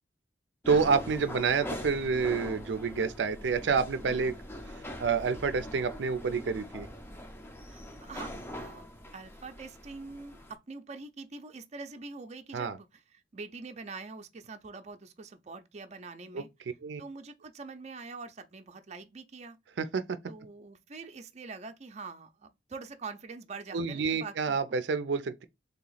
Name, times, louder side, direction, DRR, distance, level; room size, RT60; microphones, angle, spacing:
sound 1, 0.6-10.5, equal, 15° left, 0.6 m, -42 dB
voice 1, 0.7-4.4 5.0-6.9 12.5-12.8 16.3-16.4 16.8-17.0 19.8-20.2 23.7-25.4, right 5 dB, 90° right, 0.4 m, -28 dB
voice 2, 7.7-8.8 9.1-16.5 17.0-19.6 20.2-24.7, right 4 dB, 40° right, 0.5 m, -44 dB
3.4 x 2.9 x 3.8 m
head